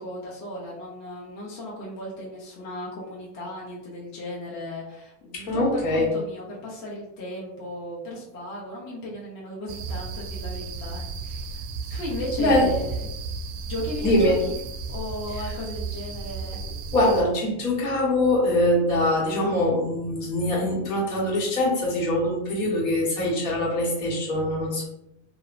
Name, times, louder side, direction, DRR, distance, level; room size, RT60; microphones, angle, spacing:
voice 1, 0.0-11.6 11.9-13.1 13.7-14.5 14.9-16.6, left 1 dB, 35° left, -5 dB, 0.7 m, -35 dB
voice 2, 5.3-6.1 12.4-12.7 14.0-14.4 16.9-24.8, left 1 dB, 75° left, -3 dB, 1.3 m, -23 dB
sound 1, 9.7-17.2, right 4 dB, 75° right, 0.5 m, -33 dB
2.8 x 2.1 x 2.4 m, 0.85 s
supercardioid pair, 135°, 48 cm